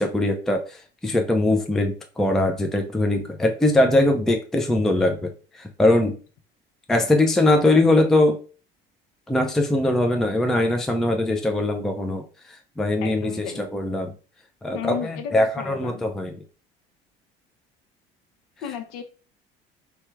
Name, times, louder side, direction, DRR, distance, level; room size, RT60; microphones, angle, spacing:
voice 1, 0.0-6.2 6.9-8.4 9.3-14.1 14.6-16.3, left 1 dB, ahead, 0.4 m, -21 dB
voice 2, 13.0-13.6 14.7-16.0 18.6-19.0, left 8 dB, 50° left, 0.7 m, -33 dB
3.2 x 2.2 x 3.1 m
figure-of-eight pair, 60°, 31 cm